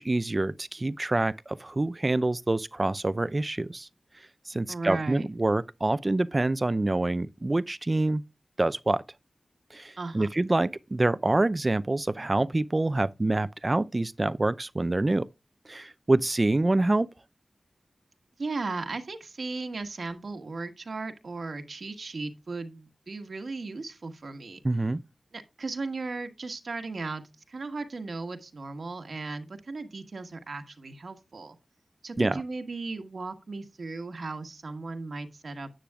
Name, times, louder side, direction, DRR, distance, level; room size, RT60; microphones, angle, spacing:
voice 1, 0.0-3.9 4.5-8.2 8.6-9.0 9.7-15.3 15.7-17.1 24.6-25.0 32.2-32.4, right 2 dB, 35° right, 0.5 m, -26 dB
voice 2, 4.7-5.3 10.0-10.3 18.4-24.6 25.3-31.6 32.0-35.7, right 3 dB, 70° right, 1.4 m, -36 dB
10.0 x 9.4 x 2.4 m
cardioid pair, 55°, 0 cm